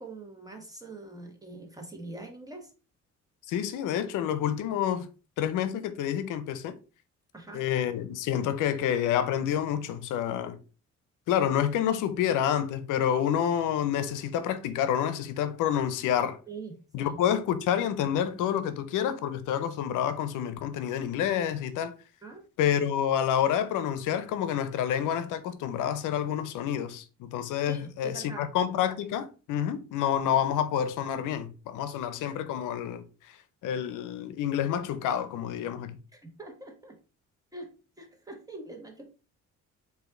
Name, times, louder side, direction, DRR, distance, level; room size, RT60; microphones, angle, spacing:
voice 1, 0.0-2.7 7.3-7.6 16.5-17.2 22.2-22.4 27.7-28.5 36.1-37.0 37.5-37.7 38.0-39.0, right 2 dB, 10° right, 1.3 m, -43 dB
voice 2, 3.5-5.1 5.4-6.8 7.5-10.6 11.3-16.4 16.9-21.9 22.6-33.4 33.6-36.0, left 9 dB, 85° left, 0.6 m, -28 dB
5.0 x 2.7 x 3.7 m
cardioid pair, 90°, 30 cm